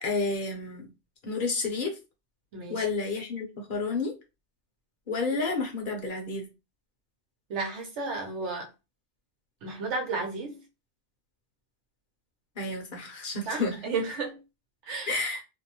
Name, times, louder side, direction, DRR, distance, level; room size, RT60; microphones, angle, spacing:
voice 1, 0.0-0.9 1.2-2.0 2.7-4.1 5.1-6.5 12.6-13.8 15.1-15.4, left 3 dB, 50° left, 0.8 m, -30 dB
voice 2, 2.5-2.9 7.5-8.7 9.6-10.6 13.5-14.4 14.8-15.2, right 3 dB, 70° right, 1.0 m, -33 dB
2.6 x 2.1 x 2.8 m
omnidirectional pair, 1.3 m